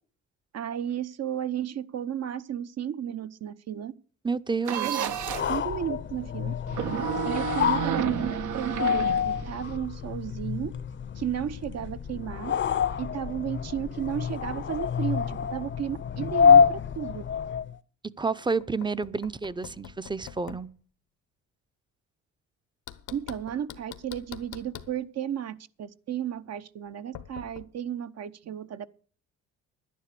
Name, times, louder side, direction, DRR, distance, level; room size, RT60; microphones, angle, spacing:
voice 1, 0.5-3.9 4.7-5.2 5.5-6.5 7.2-10.7 11.1-12.5 13.0-17.2 23.1-28.9, right 9 dB, 55° right, 0.9 m, -33 dB
voice 2, 4.2-5.1 18.2-20.7, right 4 dB, 15° right, 0.6 m, -30 dB
sound 1, 4.6-5.6 6.7-9.8, right 9 dB, 80° right, 1.2 m, -31 dB
sound 2, 5.2-17.7, left 7 dB, 40° left, 0.7 m, -27 dB
Knock, 18.6-20.7 22.9-25.0 27.2-27.7, left 11 dB, 85° left, 1.1 m, -44 dB
11.0 x 10.0 x 6.7 m
cardioid pair, 90°, 30 cm